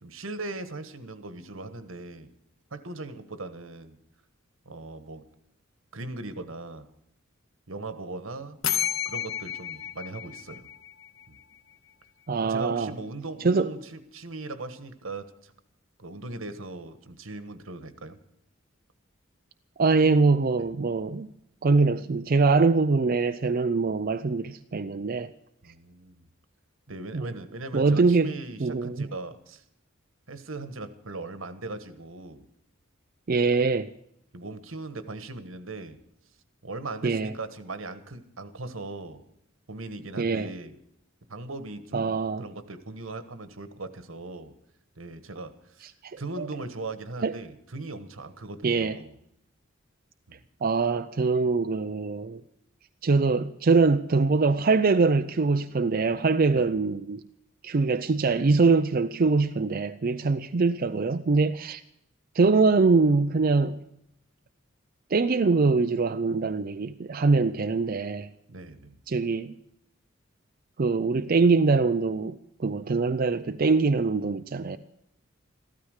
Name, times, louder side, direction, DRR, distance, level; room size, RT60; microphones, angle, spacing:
voice 1, 0.0-2.3 2.7-4.0 4.6-5.3 5.9-6.9 7.7-8.6 9.0-10.7 11.3-11.4 12.4-15.5 16.0-18.2 25.6-26.2 26.9-29.6 30.3-32.5 34.3-36.0 36.6-39.2 39.7-40.8 41.3-44.5 45.0-45.9 46.2-49.1 50.3-50.4 56.5-56.7 68.5-69.0, right 2 dB, 80° right, 1.4 m, -39 dB
sound 1, 8.6-11.4, left 10 dB, 80° left, 0.9 m, -31 dB
voice 2, 12.3-12.9 13.4-13.7 19.8-21.3 21.6-25.3 27.1-27.3 27.7-28.3 28.6-29.1 33.3-33.9 37.0-37.3 40.2-40.5 41.9-42.4 46.0-46.5 47.2-47.3 48.6-49.0 50.6-52.4 53.0-57.2 57.6-61.8 62.3-63.9 65.1-68.3 69.1-69.6 70.8-74.8, right 4 dB, 45° right, 0.5 m, -23 dB
15.0 x 13.0 x 6.4 m
head